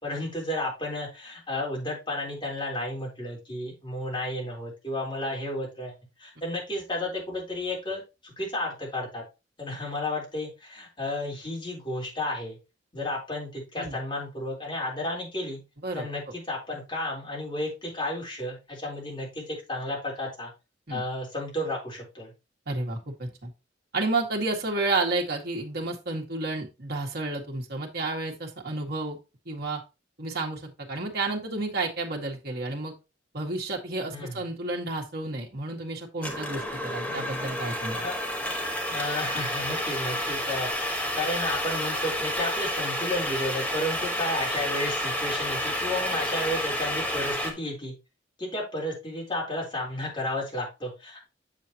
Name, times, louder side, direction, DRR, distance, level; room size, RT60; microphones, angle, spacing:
voice 1, 0.0-9.2 9.6-12.6 12.9-15.6 15.9-20.5 20.9-22.3 34.1-34.4 37.0-37.5 38.0-38.2 38.9-47.9 48.4-51.3, left 1 dB, 25° left, -3 dB, 3.8 m, -32 dB
voice 2, 22.7-23.5 23.9-29.2 29.5-29.8 30.2-32.9 33.3-38.0, right 2 dB, 60° right, 0 dB, 1.8 m, -31 dB
sound 1, 36.2-47.5, equal, 10° left, 1.4 m, -30 dB
7.7 x 7.5 x 2.9 m, 0.27 s
head